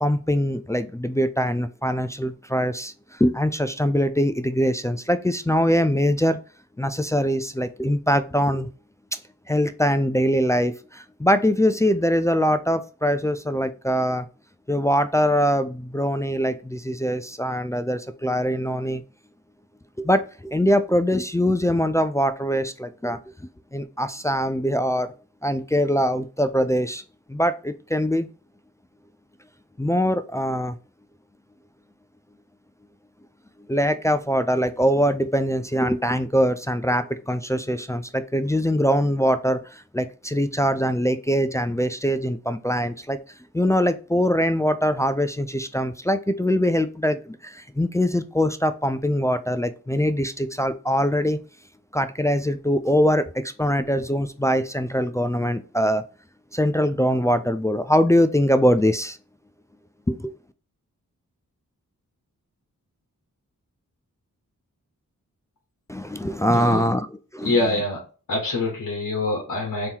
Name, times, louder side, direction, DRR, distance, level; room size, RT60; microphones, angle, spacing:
voice 1, 0.0-6.4 6.8-8.7 9.5-14.3 14.7-19.0 20.0-23.2 23.7-25.1 25.4-27.0 27.3-28.3 29.8-30.8 33.7-43.2 43.5-51.4 51.9-56.0 56.5-59.2 60.1-60.3 65.9-67.1 67.3-67.6, equal, 10° left, 9 dB, 0.3 m, -22 dB
voice 2, 66.5-66.9 67.4-68.0 68.3-69.9, left 2 dB, 60° left, 0 dB, 1.1 m, -25 dB
3.7 x 2.9 x 2.8 m, 0.36 s
cardioid pair, 45°, 34 cm